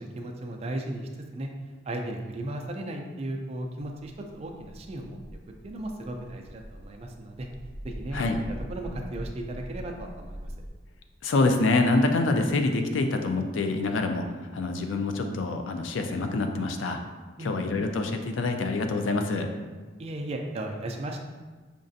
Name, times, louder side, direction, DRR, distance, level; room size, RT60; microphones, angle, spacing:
voice 1, 0.0-1.5 1.9-5.2 5.6-7.5 7.8-8.2 8.7-10.5 17.4-17.5 20.0-21.2, right 1 dB, 35° right, 2 dB, 0.3 m, -35 dB
sound 1, 4.2-10.7, equal, 50° left, 0.9 m, -42 dB
voice 2, 11.2-17.0 17.4-19.5, left 2 dB, 85° left, 5 dB, 0.4 m, -26 dB
5.1 x 2.4 x 2.6 m, 1.4 s
head